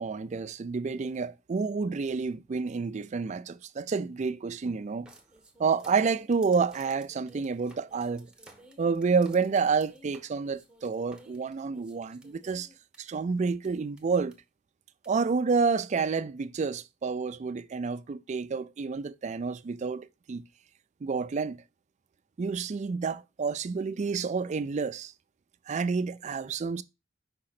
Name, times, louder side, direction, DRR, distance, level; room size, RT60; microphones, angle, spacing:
voice 1, 0.0-5.1 5.6-8.3 8.8-12.7 13.0-14.4 15.1-20.4 21.0-21.6 22.4-25.1 25.7-26.8, right 5 dB, 40° right, 0.4 m, -29 dB
sound 1, 5.1-13.0 13.6-13.7 14.0-14.3 15.0-15.1, right 1 dB, 5° right, 0.9 m, -55 dB
5.2 x 3.7 x 5.7 m
head